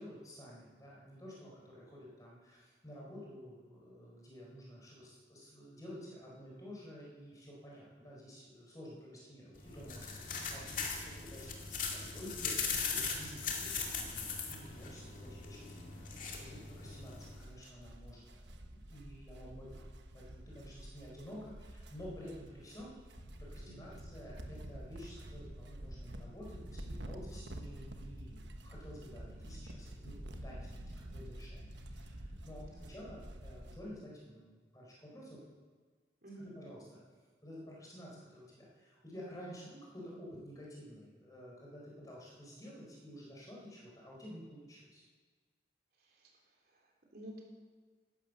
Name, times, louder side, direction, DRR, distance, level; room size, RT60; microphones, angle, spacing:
voice 1, 0.0-19.9 20.1-22.9 23.4-30.2 30.4-32.6 32.9-35.4 36.4-37.0 37.4-45.0, equal, 20° left, -4 dB, 4.3 m, -51 dB
sound 1, 9.5-17.4, left 5 dB, 45° left, 2.2 m, -40 dB
sound 2, 17.2-33.8, right 1 dB, 90° right, 1.2 m, -49 dB
sound 3, 23.1-33.8, equal, 85° left, 1.4 m, -56 dB
voice 2, 23.6-24.0 32.6-33.0 36.2-36.5 46.0-47.4, right 1 dB, 55° right, -1 dB, 3.4 m, -53 dB
12.5 x 11.5 x 6.7 m, 1.5 s
head